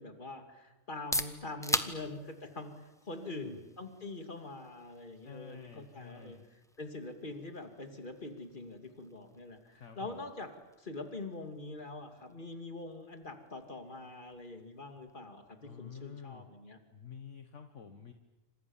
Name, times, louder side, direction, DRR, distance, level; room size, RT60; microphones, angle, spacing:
voice 1, 0.0-6.4 6.8-16.8, left 2 dB, 35° left, 6 dB, 2.9 m, -44 dB
sound 1, 0.8-16.5, equal, ahead, 1.2 m, -44 dB
voice 2, 3.2-3.7 5.2-6.5 9.7-10.3 15.6-16.5 16.9-18.1, left 7 dB, 60° left, 7 dB, 1.6 m, -49 dB
28.5 x 26.5 x 7.3 m, 1.1 s
omnidirectional pair, 1.4 m